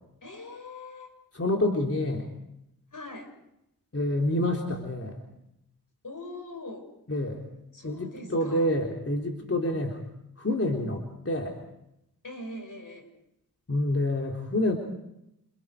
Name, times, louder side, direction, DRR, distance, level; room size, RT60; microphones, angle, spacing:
voice 1, 0.2-1.1 2.9-3.4 6.0-6.9 7.7-8.7 12.2-13.1, left 2 dB, 60° left, 5 dB, 6.3 m, -42 dB
voice 2, 1.3-2.3 3.9-5.2 7.1-7.5 7.8-10.0 10.4-11.6 13.7-14.8, left 1 dB, 40° left, 0 dB, 3.8 m, -27 dB
29.0 x 28.0 x 5.0 m, 0.83 s
cardioid pair, 45°, 36 cm